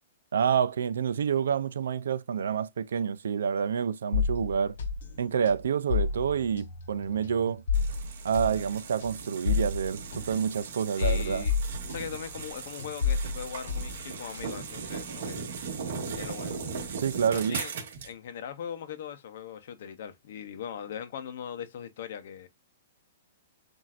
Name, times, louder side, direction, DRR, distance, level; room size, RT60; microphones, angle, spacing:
voice 1, 0.3-4.7 5.2-7.6 8.2-11.4 17.0-17.6, right 7 dB, 85° right, 0.5 m, -28 dB
sound 1, 4.1-12.5 12.8-14.7, left 5 dB, 80° left, 1.2 m, -31 dB
sound 2, 7.7-18.1, right 5 dB, 50° right, 1.8 m, -38 dB
voice 2, 11.0-11.5 11.9-15.4 16.1-16.6 17.3-17.7 18.0-22.5, left 8 dB, 45° left, 0.7 m, -40 dB
7.5 x 2.6 x 2.4 m
hypercardioid pair, 180°, 0 cm